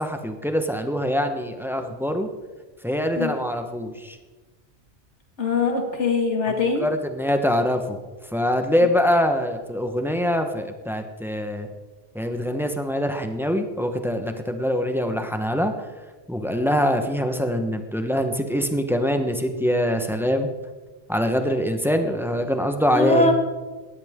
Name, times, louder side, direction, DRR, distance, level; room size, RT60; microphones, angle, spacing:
voice 1, 0.0-2.3 2.8-4.2 6.5-8.0 8.3-11.7 12.1-15.7 16.3-20.5 21.1-23.3, equal, ahead, 6 dB, 1.0 m, -24 dB
voice 2, 5.4-6.9 22.9-23.3, left 3 dB, 85° left, 3 dB, 2.5 m, -22 dB
18.0 x 13.5 x 3.7 m, 1.3 s
omnidirectional pair, 1.2 m